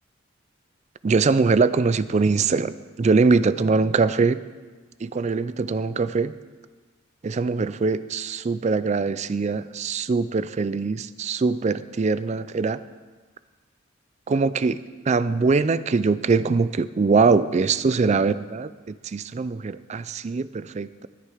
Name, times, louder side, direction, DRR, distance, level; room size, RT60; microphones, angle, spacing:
voice 1, 1.0-4.4 5.0-6.3 7.2-12.8 14.3-21.1, right 4 dB, 35° right, 15 dB, 0.3 m, -22 dB
20.0 x 6.7 x 4.9 m, 1.4 s
head